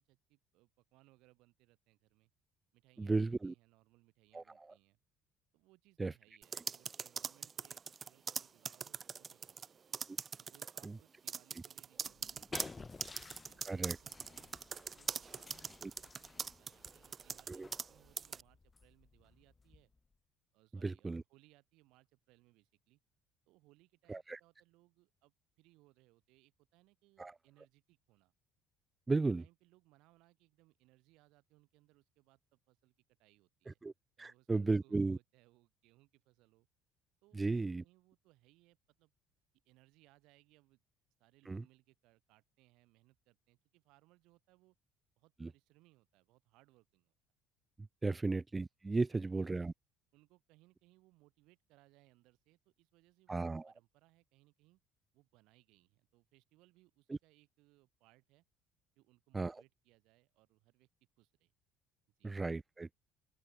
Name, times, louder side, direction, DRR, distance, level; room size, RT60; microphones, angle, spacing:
voice 1, 0.1-2.3 2.7-5.0 5.5-9.8 10.4-14.6 14.9-15.7 16.0-19.9 20.5-23.0 23.5-28.3 29.2-32.9 33.2-33.8 34.2-36.7 37.2-39.1 39.7-40.8 41.2-44.8 45.2-47.1 49.1-49.5 50.1-54.8 55.1-58.4 59.0-60.9 61.2-61.5 62.2-62.3, right 20 dB, 70° right, 7.1 m, -69 dB
voice 2, 3.0-3.5 4.3-4.4 6.0-6.1 10.8-10.9 13.7-14.0 15.8-15.9 17.5-17.7 20.8-21.2 24.1-24.4 27.2-27.3 29.1-29.4 33.8-33.9 34.2-35.2 37.3-37.8 41.5-41.6 45.4-45.5 48.0-49.7 53.3-53.7 59.3-59.6 62.2-62.9, right 3 dB, 20° right, 0.4 m, -35 dB
sound 1, 6.4-9.7 9.9-10.9 11.3-17.9 18.2-18.4, right 6 dB, 40° right, 1.0 m, -41 dB
sound 2, 12.0-20.1, left 4 dB, 25° left, 1.4 m, -54 dB
open air
hypercardioid pair, 65°, 0 cm